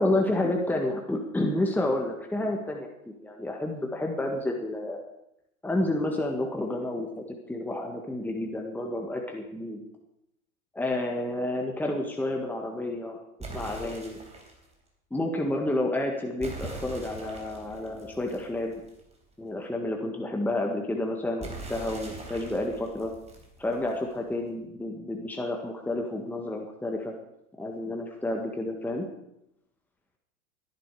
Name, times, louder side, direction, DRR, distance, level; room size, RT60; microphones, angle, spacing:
voice 1, 0.0-2.9 3.2-5.0 5.6-9.8 10.7-14.2 15.1-18.8 19.4-23.1 23.6-27.1 27.6-29.1, left 1 dB, 5° left, 1 dB, 1.7 m, -30 dB
sound 1, 13.4-14.6 16.4-19.1 21.4-24.1, right 2 dB, 15° right, 3.9 m, -42 dB
18.5 x 10.5 x 4.9 m, 0.82 s
hypercardioid pair, 110°, 43 cm